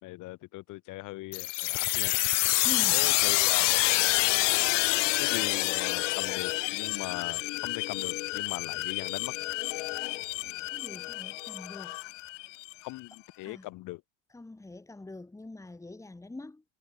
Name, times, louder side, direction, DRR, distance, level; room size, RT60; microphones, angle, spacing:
voice 1, 0.0-2.1 2.9-3.8 5.2-9.3 12.8-14.0, left 19 dB, 55° left, 2.7 m, -40 dB
sound 1, 1.3-12.7, left 21 dB, 85° left, 0.7 m, -28 dB
voice 2, 2.6-3.0 10.7-12.0 13.4-13.6 14.3-16.6, left 2 dB, 10° left, 2.6 m, -44 dB
supercardioid pair, 100°, 36 cm